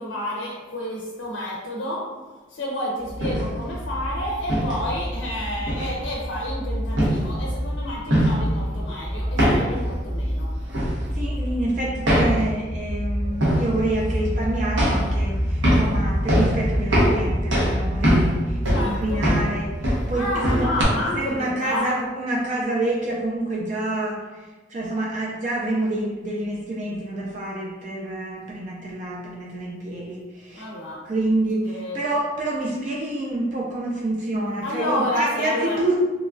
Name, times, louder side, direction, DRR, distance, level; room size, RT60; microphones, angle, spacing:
voice 1, 0.0-2.0 2.5-10.5 18.6-19.2 20.1-22.0 30.5-31.0 31.7-32.1 34.6-35.8, left 1 dB, 80° left, -3 dB, 0.5 m, -30 dB
sound 1, 3.1-20.8, equal, 85° right, 0.9 m, -23 dB
voice 2, 11.1-20.7 21.0-30.7 31.1-36.0, right 1 dB, 40° right, -3 dB, 0.3 m, -27 dB
2.9 x 2.2 x 2.4 m, 1.2 s
head